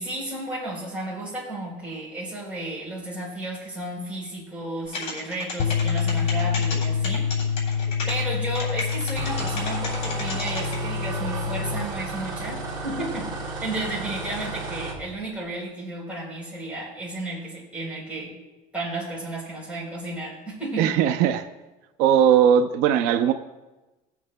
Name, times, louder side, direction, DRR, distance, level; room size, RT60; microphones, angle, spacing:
voice 1, 0.0-7.3 8.1-13.3 13.6-18.4 18.7-21.0, right 1 dB, 10° right, -6 dB, 3.7 m, -33 dB
sound 1, 4.9-10.7, left 4 dB, 50° left, 3.4 m, -32 dB
sound 2, 5.6-11.9, left 6 dB, 75° left, 0.6 m, -27 dB
sound 3, 9.1-15.0, right 4 dB, 30° right, 2.2 m, -33 dB
voice 2, 20.8-21.5 22.0-23.3, right 9 dB, 80° right, 8 dB, 0.5 m, -19 dB
19.0 x 8.4 x 2.2 m, 1.1 s
cardioid pair, 160°, 15 cm